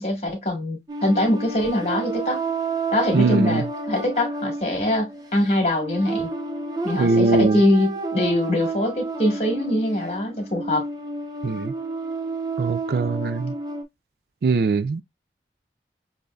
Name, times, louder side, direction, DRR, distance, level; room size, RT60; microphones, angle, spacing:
voice 1, 0.0-2.4 2.9-6.3 6.8-10.9, left 1 dB, 35° left, 1.7 m, -23 dB
sound 1, 0.9-13.8, right 3 dB, 20° right, 0.8 m, -31 dB
voice 2, 3.1-3.6 7.0-7.6 11.4-11.7 12.6-13.5 14.4-15.0, right 4 dB, 60° right, 0.3 m, -21 dB
6.7 x 2.7 x 2.4 m
head